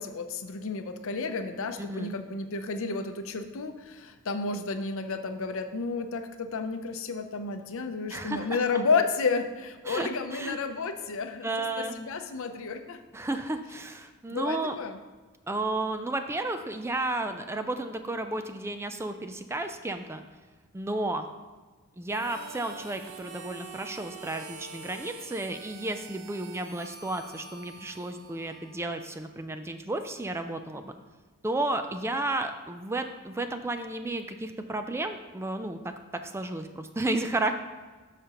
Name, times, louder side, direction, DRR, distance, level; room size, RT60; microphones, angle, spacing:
voice 1, 0.0-13.0 14.3-15.0, left 4 dB, 65° left, 8 dB, 0.6 m, -31 dB
voice 2, 1.8-2.1 8.1-8.6 9.9-10.6 11.4-12.0 13.1-14.8 15.5-20.2 20.7-21.3 22.0-31.0 31.4-37.5, right 2 dB, 10° right, 8 dB, 0.3 m, -32 dB
Harmonica, 22.1-29.0, right 4 dB, 75° right, 0.8 m, -46 dB
12.0 x 5.0 x 3.0 m, 1.3 s
head